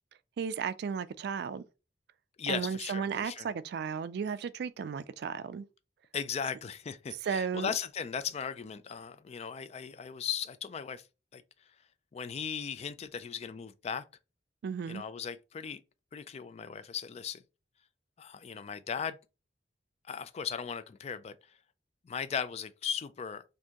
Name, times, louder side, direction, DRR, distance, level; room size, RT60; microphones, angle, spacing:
voice 1, 0.4-1.7 2.5-5.7 7.2-7.7 14.6-15.0, right 6 dB, 60° right, 0.3 m, -34 dB
voice 2, 2.4-3.5 6.1-11.0 11.3-11.4 12.1-14.0 14.9-15.8 16.1-17.4 18.2-19.2 20.1-21.4 22.1-23.4, left 7 dB, 35° left, 0.3 m, -37 dB
4.3 x 2.6 x 2.9 m
head